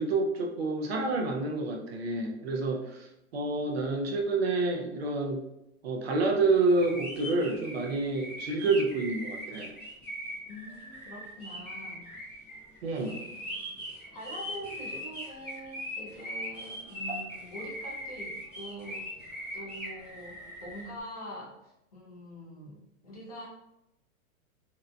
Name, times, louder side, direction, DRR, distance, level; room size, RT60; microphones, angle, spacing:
voice 1, 0.0-5.4 5.8-9.7 12.8-13.2, right 3 dB, 50° right, 2 dB, 0.4 m, -28 dB
sound 1, 6.6-20.9, equal, 5° right, 0.9 m, -40 dB
voice 2, 10.5-12.1 12.9-13.0 14.1-23.5, equal, 30° left, -5 dB, 0.4 m, -44 dB
2.6 x 2.1 x 2.5 m, 0.87 s
hypercardioid pair, 165°, 42 cm